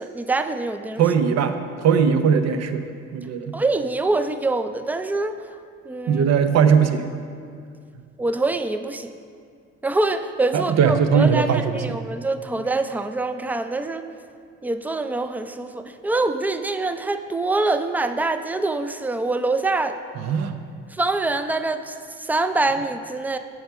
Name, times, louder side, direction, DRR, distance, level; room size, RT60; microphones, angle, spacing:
voice 1, 0.0-1.0 3.5-5.4 5.8-6.2 8.2-9.1 9.8-14.0 14.6-20.0 20.9-23.4, right 2 dB, 5° right, 9 dB, 0.4 m, -25 dB
voice 2, 1.0-2.9 3.1-3.5 6.1-7.1 10.5-12.0 20.2-20.5, right 6 dB, 60° right, 8 dB, 0.7 m, -19 dB
7.8 x 4.8 x 5.5 m, 2.2 s
supercardioid pair, 70°, 30 cm